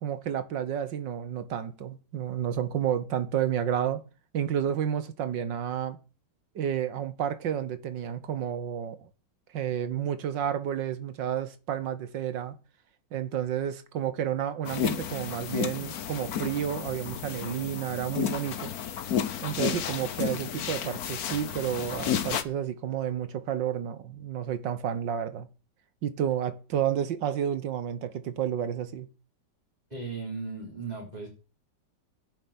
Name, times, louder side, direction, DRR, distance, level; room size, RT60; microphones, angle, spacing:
voice 1, 0.0-4.0 4.3-6.0 6.6-9.1 9.5-12.6 13.1-18.7 19.4-25.5 26.0-29.1, right 9 dB, 85° right, 1.9 m, -31 dB
sound 1, 14.6-22.4, left 8 dB, 60° left, 1.4 m, -32 dB
voice 2, 29.9-31.3, right 4 dB, 20° right, 4.4 m, -36 dB
10.5 x 7.7 x 8.7 m
omnidirectional pair, 1.9 m